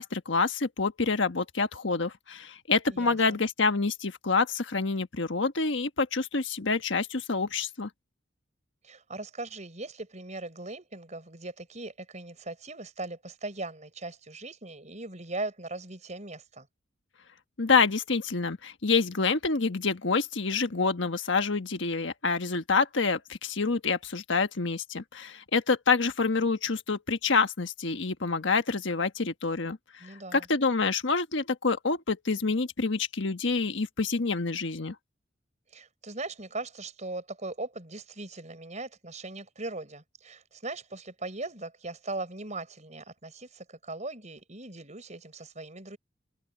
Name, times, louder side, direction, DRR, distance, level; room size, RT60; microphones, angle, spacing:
voice 1, 0.0-7.9 17.6-34.9, left 4 dB, 70° left, 1.4 m, -27 dB
voice 2, 2.9-3.4 8.8-16.7 30.0-30.5 35.7-46.0, right 2 dB, 35° right, 5.3 m, -39 dB
head